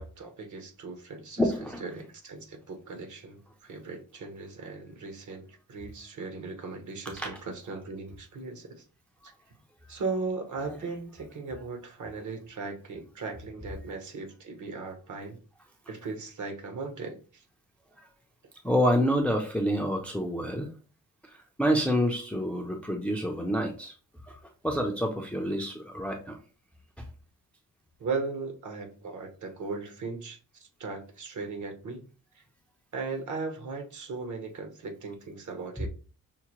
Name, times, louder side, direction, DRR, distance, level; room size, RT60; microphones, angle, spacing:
voice 1, 0.0-1.4 1.8-8.8 9.9-15.4 15.9-17.4 28.0-32.1 32.3-32.4 32.9-35.9, right 4 dB, 55° right, 4 dB, 1.0 m, -37 dB
voice 2, 1.4-1.8 7.2-7.4 18.0-18.1 18.6-20.7 21.2-23.9 24.2-24.4 24.6-26.4, equal, 5° left, 3 dB, 0.4 m, -28 dB
5.7 x 2.1 x 2.9 m, 0.36 s
wide cardioid pair, 135°, 35 cm